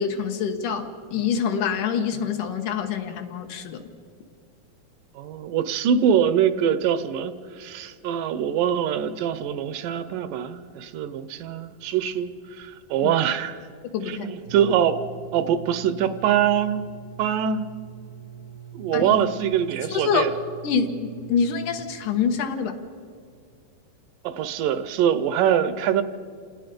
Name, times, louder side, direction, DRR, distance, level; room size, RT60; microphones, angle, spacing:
voice 1, 0.0-3.9 13.0-13.1 13.9-14.3 18.9-19.1 19.9-20.3 20.6-22.8, left 6 dB, 70° left, 6 dB, 2.5 m, -26 dB
voice 2, 5.2-13.6 14.1-15.0 15.3-16.9 17.2-17.7 18.7-20.3 24.2-26.0, right 9 dB, 75° right, 13 dB, 2.2 m, -23 dB
sound 1, 14.4-21.8, right 10 dB, 45° right, 1.0 m, -43 dB
28.0 x 19.0 x 5.2 m, 2.2 s
omnidirectional pair, 4.0 m